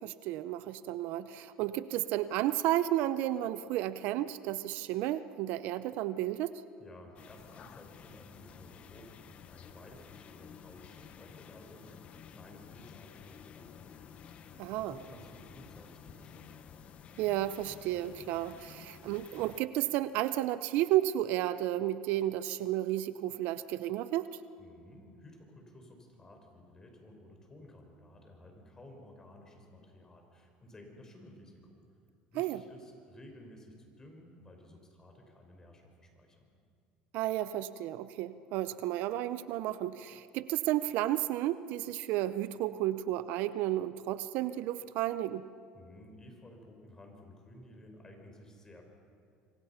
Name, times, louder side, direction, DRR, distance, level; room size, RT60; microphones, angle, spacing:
voice 1, 0.0-6.5 14.6-14.9 17.2-24.3 32.4-32.6 37.1-45.4, right 14 dB, 70° right, 14 dB, 0.7 m, -32 dB
voice 2, 6.8-14.4 14.9-16.6 24.6-31.8 32.3-36.5 45.7-48.8, left 1 dB, 20° left, 3 dB, 5.2 m, -54 dB
sound 1, 7.2-19.6, left 8 dB, 45° left, 1.2 m, -52 dB
26.5 x 23.0 x 5.8 m, 2.4 s
supercardioid pair, 115°, 3 cm